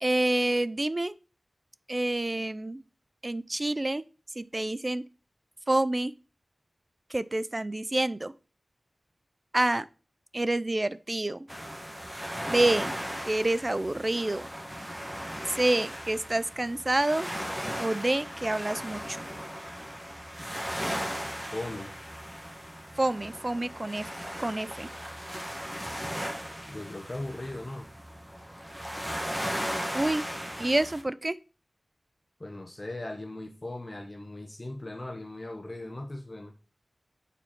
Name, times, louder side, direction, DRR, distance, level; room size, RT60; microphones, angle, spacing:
voice 1, 0.0-1.1 1.9-2.8 3.2-4.0 4.4-5.0 5.7-6.1 7.1-8.3 9.5-9.9 10.3-11.5 12.5-12.9 13.3-14.5 15.5-17.3 17.8-19.2 23.0-24.1 24.4-24.9 29.9-30.2 30.6-31.4, right 1 dB, 30° right, 0.4 m, -27 dB
sound 1, 11.5-31.0, equal, 10° right, 1.3 m, -37 dB
voice 2, 21.2-21.9 26.7-27.9 32.4-36.5, left 1 dB, 30° left, 0.9 m, -39 dB
7.0 x 4.3 x 4.2 m
wide cardioid pair, 70°, 0 cm